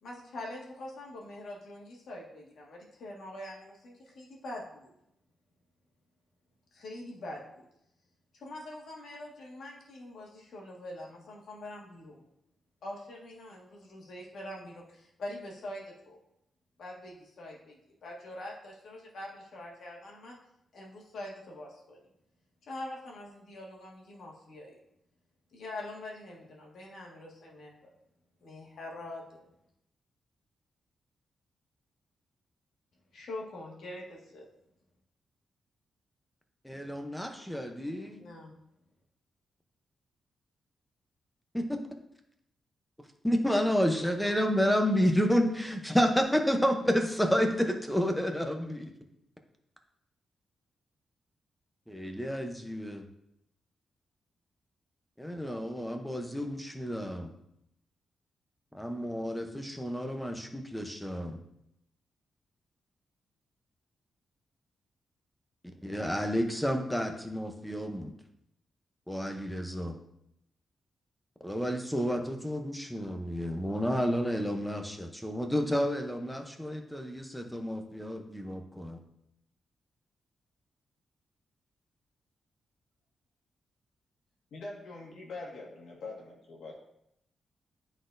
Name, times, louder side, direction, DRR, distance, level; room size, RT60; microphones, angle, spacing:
voice 1, 0.0-4.9 6.7-7.6 8.3-12.2 12.8-16.2 16.8-20.4 20.7-22.1 22.6-24.8 25.5-27.9 28.4-29.5 33.1-34.5 38.2-38.5, left 1 dB, 65° left, -2 dB, 1.6 m, -44 dB
voice 2, 36.6-38.2 41.5-41.8 43.2-48.9 51.9-53.0 55.2-57.3 58.7-61.4 65.8-68.1 69.1-70.0 71.4-79.0, equal, 5° left, 4 dB, 0.6 m, -30 dB
voice 3, 84.5-86.7, left 3 dB, 85° left, -3 dB, 1.6 m, -43 dB
11.5 x 4.1 x 2.6 m, 0.78 s
wide cardioid pair, 165°, 0 cm